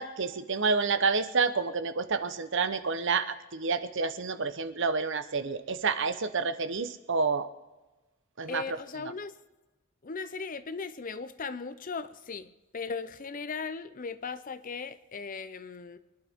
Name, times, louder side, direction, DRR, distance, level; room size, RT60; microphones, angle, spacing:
voice 1, 0.0-7.5 8.4-8.8, right 4 dB, 60° right, 0.9 m, -29 dB
voice 2, 8.5-9.4 10.0-16.0, left 5 dB, 40° left, 0.6 m, -38 dB
24.5 x 11.5 x 3.6 m
head